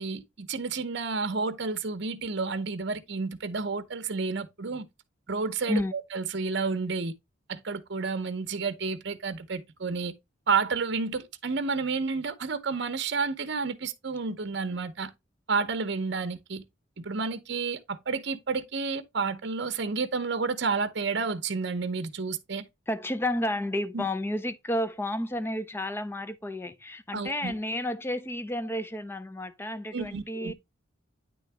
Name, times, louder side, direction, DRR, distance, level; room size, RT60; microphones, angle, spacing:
voice 1, 0.0-4.9 5.3-7.1 7.5-10.1 10.5-15.1 15.5-16.6 17.0-22.7 23.9-24.1 27.1-27.5 29.9-30.5, right 4 dB, 60° right, 0.8 m, -30 dB
voice 2, 22.9-30.5, left 1 dB, 10° left, 0.5 m, -31 dB
9.3 x 3.9 x 3.3 m
head